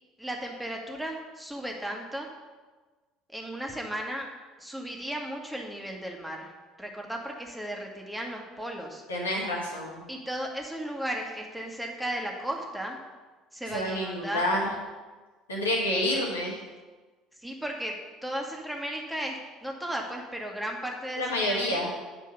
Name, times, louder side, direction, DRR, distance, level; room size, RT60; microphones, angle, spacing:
voice 1, 0.2-2.3 3.3-4.3 4.6-6.5 6.8-9.0 10.1-13.0 13.5-14.5 17.4-17.9 18.2-21.9, right 1 dB, 5° right, 0 dB, 1.6 m, -35 dB
voice 2, 9.1-10.0 13.7-14.7 15.5-16.5 21.2-21.9, left 1 dB, 80° left, -2 dB, 1.7 m, -28 dB
8.5 x 4.5 x 6.7 m, 1.3 s
figure-of-eight pair, 60°, 0 cm